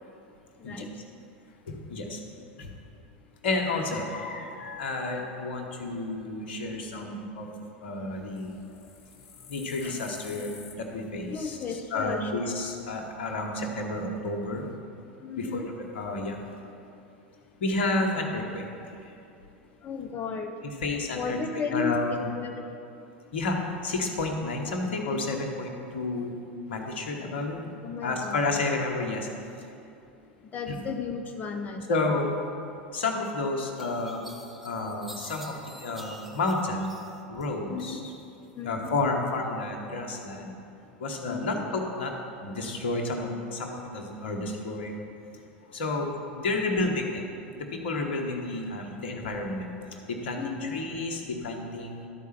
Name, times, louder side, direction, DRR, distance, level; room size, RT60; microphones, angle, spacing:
voice 1, 1.7-2.2 2.6-2.7 3.4-7.5 7.8-8.6 9.5-14.7 15.4-16.4 17.6-19.2 20.6-22.3 23.3-26.4 26.7-27.6 28.0-29.3 29.6-29.7 30.7-30.8 31.9-32.3 32.9-34.2 34.6-37.0 37.3-38.0 38.6-40.5 41.0-45.0 45.6-47.2 47.5-52.1, left 2 dB, 70° left, 2 dB, 1.2 m, -31 dB
sound 1, 8.1-13.1, left 7 dB, 50° left, 0.9 m, -52 dB
voice 2, 11.3-12.3 15.2-15.6 19.8-20.5 21.1-22.0 22.4-22.7 27.8-28.4 30.5-31.9 37.7-38.0 38.6-38.9 41.3-41.6 50.3-50.8, left 6 dB, 30° left, 4 dB, 0.6 m, -34 dB
sound 2, 33.8-37.5 37.8-38.5, right 1 dB, ahead, 0.9 m, -48 dB
12.5 x 4.7 x 5.9 m, 2.7 s
hypercardioid pair, 85°, 6 cm